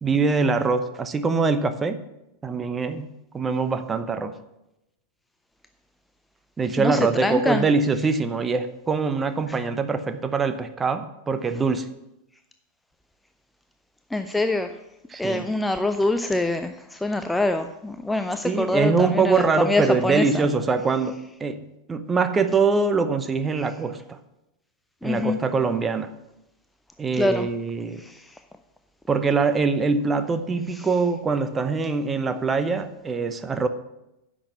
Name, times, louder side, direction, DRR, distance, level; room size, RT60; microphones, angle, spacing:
voice 1, 0.0-2.0 2.4-3.1 3.3-4.4 6.6-11.9 15.1-15.5 18.4-24.2 25.0-26.1 27.0-28.0 29.1-33.7, right 4 dB, 15° right, 10 dB, 0.8 m, -23 dB
voice 2, 6.8-7.6 14.1-14.7 15.2-20.3 25.0-25.4 27.1-27.5 28.0-28.2, left 2 dB, 5° left, 8 dB, 0.5 m, -24 dB
10.0 x 6.2 x 7.2 m, 0.89 s
figure-of-eight pair, 90°, 0 cm